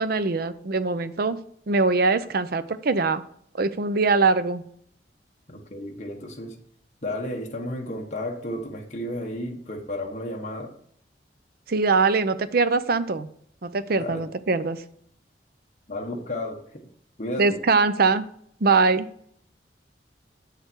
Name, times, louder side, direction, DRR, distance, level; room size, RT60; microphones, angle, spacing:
voice 1, 0.0-1.4 1.7-3.2 3.5-4.6 11.7-13.3 13.6-14.8 17.4-18.2 18.6-19.1, right 4 dB, 60° right, 12 dB, 0.6 m, -22 dB
voice 2, 5.5-6.5 7.0-10.7 14.0-14.2 15.9-16.9 17.2-17.6, left 1 dB, 45° left, 1 dB, 1.3 m, -33 dB
8.1 x 6.7 x 4.5 m, 0.65 s
head